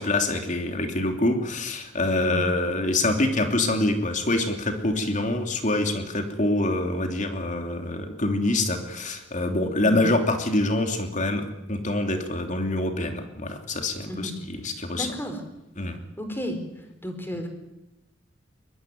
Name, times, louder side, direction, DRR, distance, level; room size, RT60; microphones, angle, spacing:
voice 1, 0.0-15.1 15.8-16.0, left 2 dB, 40° left, 5 dB, 3.1 m, -25 dB
voice 2, 14.6-15.4 16.2-16.6 17.0-17.5, equal, 10° left, 6 dB, 4.3 m, -33 dB
22.0 x 21.5 x 9.4 m, 0.96 s
head